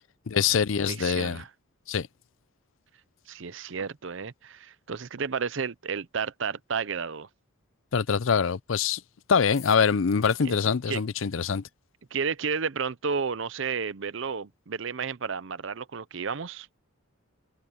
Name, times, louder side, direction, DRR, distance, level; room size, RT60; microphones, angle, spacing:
voice 1, 0.3-1.4 1.9-2.1 7.9-9.0 9.3-11.6, left 6 dB, 65° left, 0.5 m, -24 dB
voice 2, 0.9-1.5 3.3-7.3 10.4-10.6 10.9-11.0 12.1-16.7, right 6 dB, 60° right, 0.6 m, -32 dB
sound 1, 9.5-10.8, left 12 dB, 45° left, 1.4 m, -48 dB
head